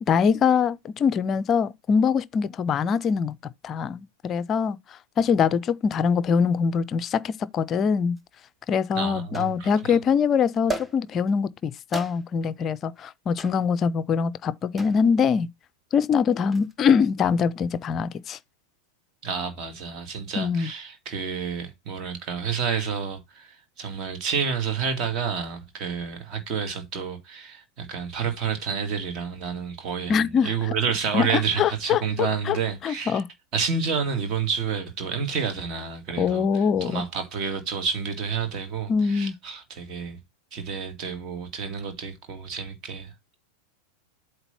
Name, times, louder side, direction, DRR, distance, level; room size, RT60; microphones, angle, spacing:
voice 1, 0.0-3.4 3.6-8.2 8.7-15.5 15.9-18.4 20.3-20.7 30.1-30.5 31.1-32.6 32.8-33.3 36.2-37.0 38.9-39.3, left 6 dB, 30° left, 0.5 m, -23 dB
sound 1, 8.2-8.3 9.3-9.9 10.7-11.3 11.9-12.5 13.4-13.7 14.8-15.1 16.3-16.7, right 3 dB, ahead, 0.8 m, -35 dB
voice 2, 8.9-10.0 19.2-33.2 33.5-36.4 36.8-40.2 40.5-43.1, right 6 dB, 35° right, 2.1 m, -29 dB
8.0 x 3.3 x 5.6 m
figure-of-eight pair, 90°, 0 cm